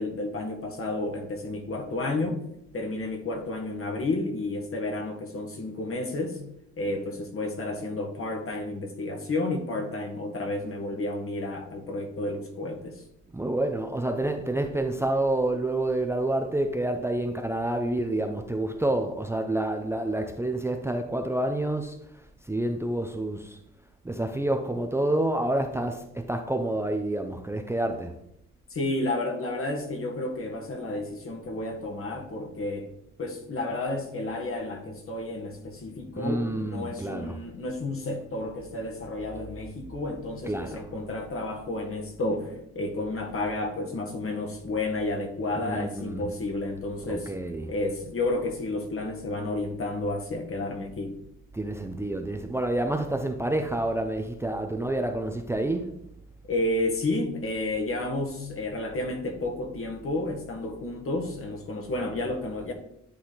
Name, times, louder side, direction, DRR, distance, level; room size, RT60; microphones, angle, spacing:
voice 1, 0.0-2.4 2.7-6.4 6.8-13.0 28.7-32.9 33.2-47.3 47.7-51.2 56.5-62.7, left 2 dB, 45° left, 3 dB, 1.7 m, -31 dB
voice 2, 13.3-21.9 22.4-23.6 24.0-28.1 36.1-37.4 40.4-40.8 45.6-46.3 47.1-47.7 51.5-55.9, right 1 dB, 10° right, 5 dB, 0.6 m, -28 dB
10.5 x 4.1 x 4.0 m, 0.77 s
cardioid pair, 90°, 30 cm